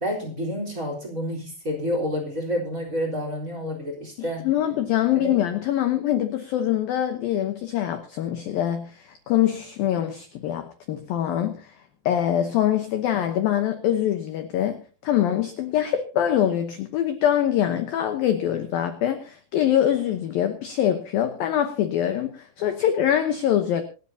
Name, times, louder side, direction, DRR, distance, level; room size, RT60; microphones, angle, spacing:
voice 1, 0.0-4.5 5.2-5.4, equal, 20° right, 3.7 m, -29 dB
voice 2, 4.2-11.7 12.1-23.8, left 11 dB, 75° left, 2.2 m, -24 dB
26.5 x 10.5 x 2.8 m
omnidirectional pair, 5.5 m